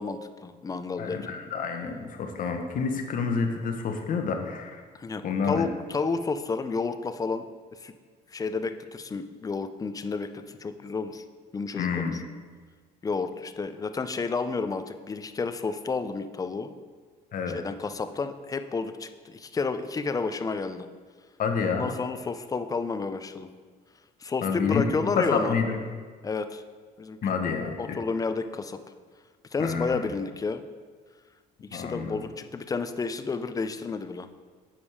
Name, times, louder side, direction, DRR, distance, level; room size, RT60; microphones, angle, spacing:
voice 1, 0.0-1.3 4.9-7.4 7.8-7.9 8.3-11.2 11.5-12.0 13.0-16.7 17.5-20.9 21.8-23.5 24.2-25.5 26.2-26.6 27.0-27.2 27.8-28.8 29.5-30.6 31.6-34.3, left 4 dB, 20° left, 10 dB, 0.4 m, -31 dB
voice 2, 1.0-4.8 5.2-5.6 11.8-12.2 17.3-17.6 21.4-21.9 24.4-24.8 25.1-25.8 27.2-28.0 29.6-30.1 31.7-32.2, left 5 dB, 55° left, 4 dB, 1.0 m, -28 dB
7.2 x 5.1 x 4.8 m, 1.5 s
cardioid pair, 110°, 17 cm